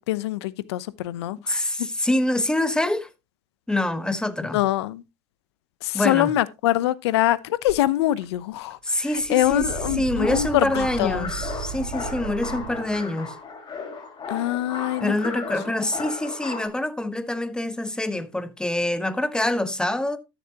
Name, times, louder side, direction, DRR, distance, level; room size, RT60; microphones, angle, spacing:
voice 1, 0.1-1.6 4.5-5.0 5.8-8.8 9.3-11.3 14.3-15.4, left 14 dB, 85° left, 0.7 m, -24 dB
voice 2, 1.5-3.1 3.7-4.6 5.9-6.3 8.8-13.4 15.0-20.2, left 1 dB, 5° left, 1.1 m, -25 dB
sound 1, 7.7-7.8 8.2-8.7 9.0-13.0, right 6 dB, 80° right, 2.7 m, -35 dB
sound 2, 9.7-16.7, left 4 dB, 30° left, 4.9 m, -35 dB
13.0 x 7.1 x 2.9 m
supercardioid pair, 100°, 14 cm